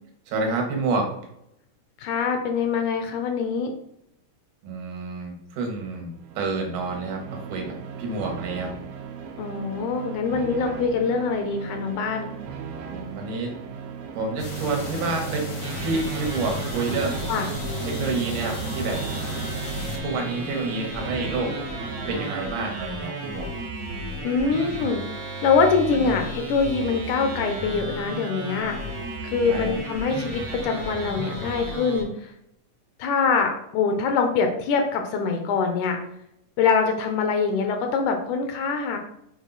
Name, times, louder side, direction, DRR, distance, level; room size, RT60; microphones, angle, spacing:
voice 1, 0.3-1.1 4.6-8.7 12.9-13.5 14.1-15.5 15.8-17.2 17.9-19.1 20.0-21.6 22.1-23.5 26.0-26.1 29.5-29.8, right 3 dB, 75° right, 2 dB, 2.6 m, -29 dB
voice 2, 2.0-3.7 9.4-12.4 17.3-17.5 24.2-25.0 25.4-28.8 29.2-32.3 33.0-36.0 36.6-39.0, left 5 dB, 75° left, 5 dB, 2.0 m, -24 dB
sound 1, 6.1-23.0, right 6 dB, 90° right, 2.4 m, -38 dB
sound 2, 14.4-20.0, right 1 dB, 50° left, 1.0 m, -33 dB
sound 3, 15.6-32.0, right 1 dB, 50° right, 1.1 m, -34 dB
6.5 x 4.3 x 3.9 m, 0.78 s
omnidirectional pair, 3.8 m